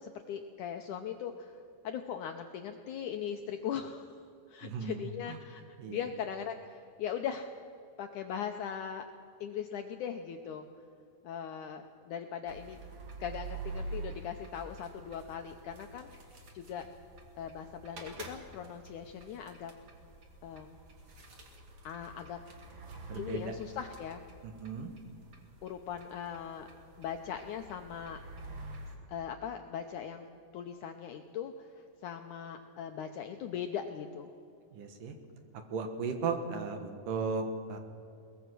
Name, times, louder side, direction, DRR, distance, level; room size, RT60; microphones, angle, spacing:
voice 1, 0.0-4.2 4.5-5.6 5.9-7.5 8.0-9.1 9.4-10.7 11.2-12.8 13.2-16.1 16.5-16.9 17.4-19.7 20.4-20.8 21.8-22.4 23.2-24.2 25.6-26.7 27.0-28.2 29.1-30.3 30.5-34.3, left 8 dB, 75° left, 5 dB, 1.8 m, -40 dB
voice 2, 4.6-5.4 5.8-6.0 23.1-23.5 24.6-24.9 34.7-35.1 35.7-37.8, right 4 dB, 65° right, 6 dB, 2.8 m, -36 dB
sound 1, 12.5-29.0, right 2 dB, 40° right, 2.3 m, -47 dB
22.5 x 20.0 x 6.2 m, 2.4 s
omnidirectional pair, 4.4 m